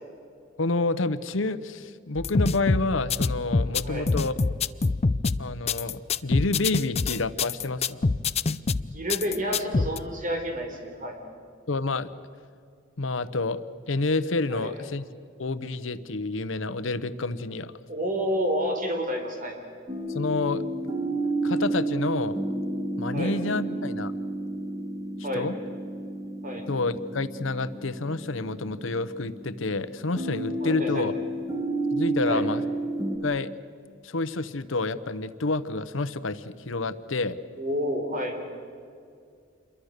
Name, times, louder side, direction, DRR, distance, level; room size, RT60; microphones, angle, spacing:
voice 1, 0.6-4.3 5.4-8.0 11.7-12.1 13.0-13.6 13.9-15.0 15.4-17.7 20.1-20.6 21.4-22.4 23.0-24.1 25.2-25.5 26.7-31.1 31.9-32.6 33.2-33.5 34.0-37.4, left 3 dB, 85° left, 13 dB, 1.0 m, -29 dB
sound 1, 2.2-10.0, left 3 dB, 35° left, 0.5 m, -25 dB
voice 2, 3.8-4.2 8.9-11.2 14.5-14.7 17.9-19.5 23.1-23.4 25.2-25.5 26.4-26.6 30.6-31.1 32.3-32.5 37.6-38.3, equal, 45° right, 4 dB, 4.2 m, -29 dB
sound 2, 19.9-33.2, right 1 dB, 20° right, 1.8 m, -31 dB
27.5 x 22.5 x 6.7 m, 2.3 s
head